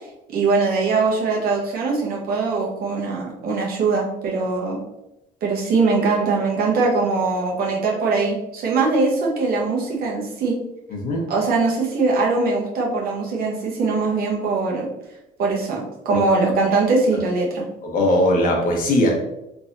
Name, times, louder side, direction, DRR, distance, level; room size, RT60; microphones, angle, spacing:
voice 1, 0.3-4.8 5.4-10.6 11.3-14.9 15.4-17.6, right 3 dB, 65° right, -2 dB, 1.1 m, -21 dB
voice 2, 10.9-11.2 16.1-16.2 17.9-19.1, left 1 dB, 55° left, 0 dB, 1.1 m, -19 dB
3.5 x 3.4 x 2.7 m, 0.89 s
cardioid pair, 110°, 17 cm